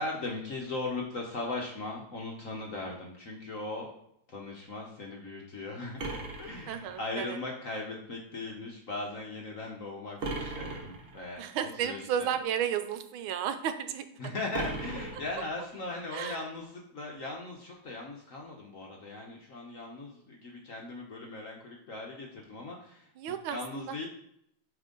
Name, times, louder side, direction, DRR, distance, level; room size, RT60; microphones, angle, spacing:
voice 1, 0.0-12.3 14.2-16.7 16.9-23.1 23.5-24.1, left 2 dB, 55° left, 0 dB, 1.0 m, -39 dB
sound 1, 6.0-7.4 10.2-11.4 14.5-15.9, right 2 dB, 55° right, 0.6 m, -38 dB
voice 2, 6.7-7.4 11.4-14.1 16.1-16.4 23.2-24.1, right 9 dB, 80° right, 9 dB, 1.4 m, -33 dB
8.8 x 3.5 x 3.8 m, 0.71 s
omnidirectional pair, 2.3 m